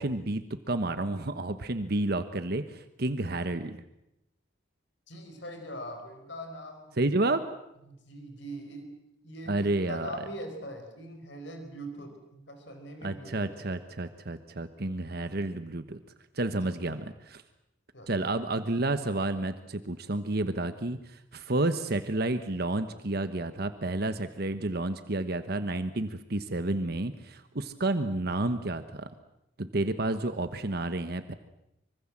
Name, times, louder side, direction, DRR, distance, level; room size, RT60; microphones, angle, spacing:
voice 1, 0.0-3.8 7.0-7.4 9.5-10.1 13.0-16.0 16.3-17.4 18.1-29.1 29.6-31.3, right 2 dB, 55° right, 10 dB, 1.2 m, -30 dB
voice 2, 5.1-7.0 7.9-8.9 9.2-13.7 16.5-16.9 17.9-18.1, equal, 65° left, 6 dB, 4.8 m, -42 dB
25.0 x 25.0 x 7.5 m, 0.84 s
head